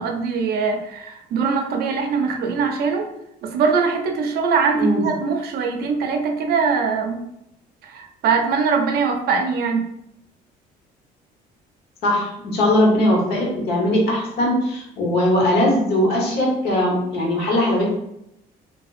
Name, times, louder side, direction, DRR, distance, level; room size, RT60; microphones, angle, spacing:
voice 1, 0.0-3.1 3.4-7.2 7.8-9.9, right 5 dB, 65° right, 3 dB, 0.5 m, -22 dB
voice 2, 12.0-18.0, left 1 dB, 75° left, -2 dB, 1.1 m, -20 dB
3.4 x 2.2 x 2.5 m, 0.82 s
cardioid pair, 110°, 17 cm